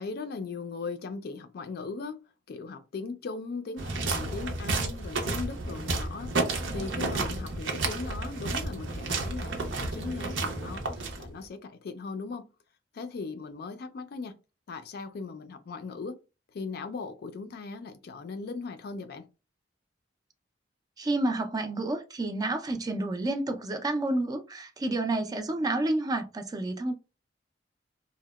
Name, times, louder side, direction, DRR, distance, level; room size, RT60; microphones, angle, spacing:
voice 1, 0.0-2.2 2.5-6.3 6.7-12.5 12.9-14.4 14.7-16.2 16.5-19.3, left 4 dB, 55° left, 0.4 m, -38 dB
sound 1, 3.8-11.5, right 3 dB, 80° right, 0.5 m, -31 dB
voice 2, 21.0-26.9, right 2 dB, 20° right, 0.3 m, -29 dB
2.7 x 2.0 x 2.2 m
head